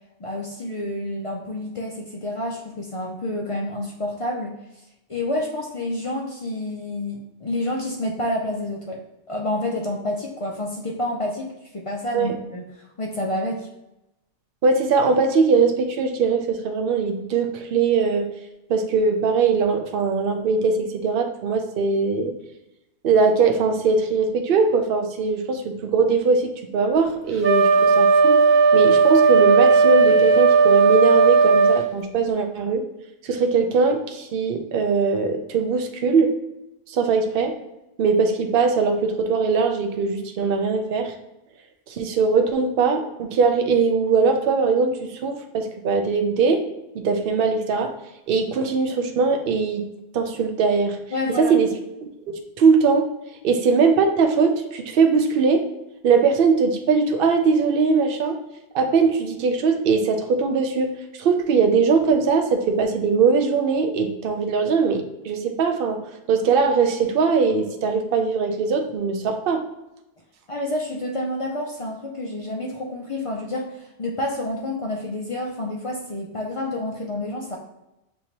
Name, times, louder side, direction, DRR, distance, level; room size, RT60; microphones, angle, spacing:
voice 1, 0.2-4.6 5.1-9.0 9.3-13.7 51.1-51.5 70.5-77.6, left 1 dB, 50° left, -1 dB, 0.4 m, -29 dB
voice 2, 14.6-18.3 18.7-22.3 23.0-28.4 28.7-32.8 33.2-36.3 36.9-37.5 38.0-41.1 41.9-46.6 46.9-47.9 48.3-49.8 50.1-51.0 51.4-51.7 52.3-53.1 53.4-55.6 56.0-58.4 58.7-60.9 61.2-66.0 66.3-69.6, right 5 dB, 60° right, 6 dB, 0.7 m, -21 dB
Wind instrument woodwind instrument, 27.4-31.9, right 4 dB, 20° right, 0.3 m, -15 dB
6.3 x 2.9 x 2.9 m, 0.92 s
omnidirectional pair, 1.2 m